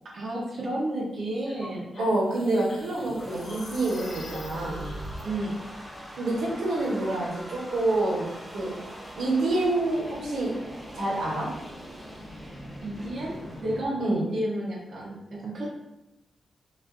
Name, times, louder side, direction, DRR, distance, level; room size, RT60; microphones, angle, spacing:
voice 1, 0.1-2.0 5.2-5.6 12.8-13.4 13.6-15.7, right 1 dB, 50° right, -5 dB, 0.6 m, -31 dB
sound 1, 1.5-5.2, equal, 40° left, 0.6 m, -41 dB
voice 2, 2.0-4.9 6.2-8.7 9.2-10.5 10.9-11.5 14.0-14.3, right 2 dB, 80° right, -3 dB, 0.9 m, -27 dB
sound 2, 2.6-13.9, equal, 10° right, 0.6 m, -43 dB
2.4 x 2.3 x 3.5 m, 0.94 s
wide cardioid pair, 110°, 0 cm